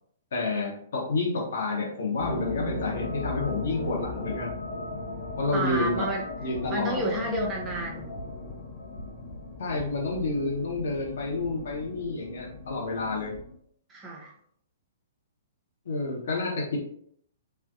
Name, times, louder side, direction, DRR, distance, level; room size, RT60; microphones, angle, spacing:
voice 1, 0.3-4.5 5.4-6.1 6.4-7.1 9.6-13.3 15.8-16.8, left 3 dB, 55° left, -2 dB, 0.8 m, -29 dB
sound 1, 2.2-13.5, left 3 dB, 25° left, 0.6 m, -37 dB
sound 2, 5.1-5.4 5.7-6.2 6.5-7.0 7.3-7.8 8.2-8.6 9.0-9.4 9.8-10.2, right 1 dB, 75° right, 0.7 m, -43 dB
voice 2, 5.5-6.3 6.7-8.1 13.9-14.3, right 1 dB, 20° right, -2 dB, 0.6 m, -30 dB
2.6 x 2.1 x 2.5 m, 0.66 s
figure-of-eight pair, 115°, 0 cm